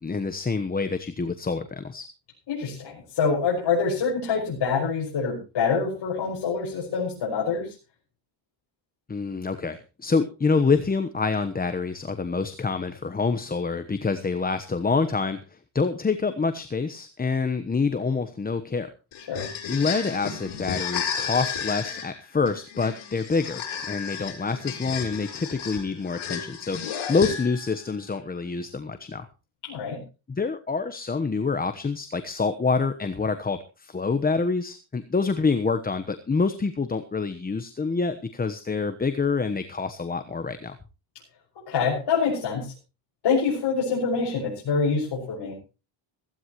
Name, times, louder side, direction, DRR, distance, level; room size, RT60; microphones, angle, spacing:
voice 1, 0.0-2.1 9.1-18.9 19.7-29.3 30.3-40.8, left 4 dB, 20° left, 10 dB, 1.1 m, -27 dB
voice 2, 2.5-7.7 19.3-19.5 29.6-30.0 41.7-42.7 43.2-45.6, left 5 dB, 55° left, -3 dB, 6.0 m, -25 dB
sound 1, 19.1-27.7, left 7 dB, 80° left, 4.9 m, -33 dB
16.5 x 16.0 x 3.1 m, 0.31 s
cardioid pair, 130°, 47 cm